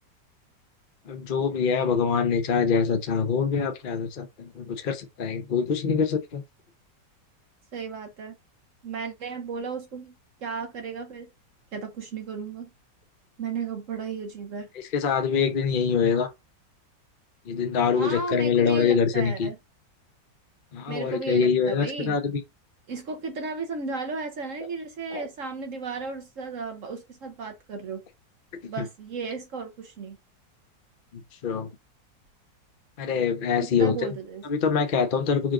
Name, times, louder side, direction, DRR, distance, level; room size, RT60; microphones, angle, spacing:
voice 1, 1.1-6.4 14.9-16.3 17.5-19.5 20.7-22.4 25.1-25.3 28.8-28.9 31.4-31.7 33.0-33.9 34.4-35.5, left 6 dB, 65° left, 0.5 m, -24 dB
voice 2, 7.7-8.4 8.8-10.2 10.4-11.3 11.7-12.7 13.4-14.7 17.9-19.6 20.9-22.2 22.9-28.1 28.7-30.2 33.6-34.4, right 4 dB, 60° right, 0.9 m, -34 dB
4.3 x 2.5 x 4.7 m
omnidirectional pair, 2.0 m